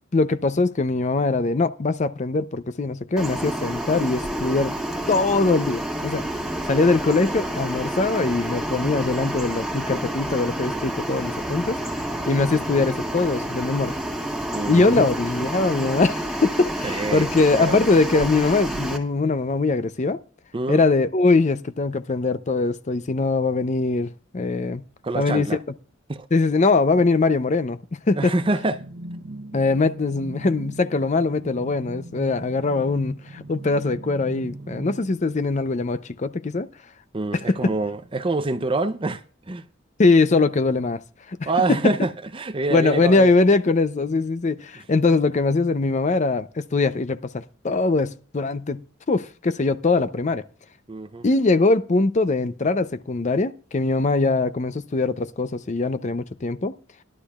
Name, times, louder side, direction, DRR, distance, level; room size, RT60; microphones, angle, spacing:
voice 1, 0.1-4.7 5.1-6.2 6.7-11.8 12.3-14.0 14.7-20.2 20.7-24.8 25.1-25.5 26.3-27.8 28.1-28.3 29.5-36.7 37.5-37.6 40.0-41.0 41.3-41.5 42.7-48.8 49.1-50.4 51.2-56.7, left 3 dB, 40° left, 0.5 m, -22 dB
sound 1, 3.2-19.0, right 1 dB, ahead, 1.8 m, -29 dB
voice 2, 14.5-15.1 16.8-17.3 17.6-17.8 20.5-20.8 25.0-25.6 26.1-26.3 28.1-28.8 37.1-39.6 41.4-43.3 50.9-51.3, right 2 dB, 25° right, 0.6 m, -26 dB
sound 2, 28.4-35.1, right 1 dB, 90° right, 0.9 m, -39 dB
16.0 x 11.5 x 2.3 m
head